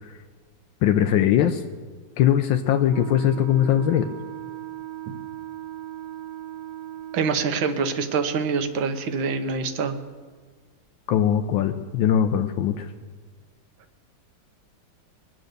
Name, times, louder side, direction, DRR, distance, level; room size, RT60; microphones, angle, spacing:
voice 1, 0.8-1.6 2.2-4.1 11.1-12.9, left 10 dB, 80° left, 7 dB, 1.4 m, -21 dB
Wind instrument woodwind instrument, 2.9-7.8, right 12 dB, 65° right, 1.3 m, -38 dB
voice 2, 7.1-9.9, right 5 dB, 80° right, 8 dB, 1.8 m, -25 dB
22.0 x 7.8 x 6.6 m, 1.5 s
omnidirectional pair, 2.1 m